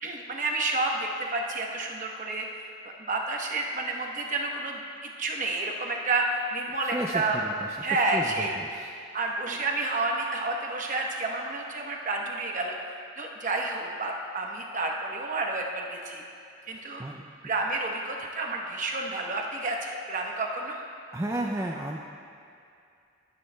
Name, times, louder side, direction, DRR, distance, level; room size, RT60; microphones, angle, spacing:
voice 1, 0.0-4.8 5.2-7.4 7.8-8.5 9.1-16.2 16.7-17.0 17.4-20.8, right 2 dB, 40° right, 0 dB, 1.0 m, -30 dB
voice 2, 6.9-7.5 8.1-8.9 9.5-9.6 16.7-17.2 21.1-22.0, right 1 dB, 15° right, -1 dB, 0.4 m, -33 dB
18.5 x 9.3 x 2.2 m, 2.5 s
head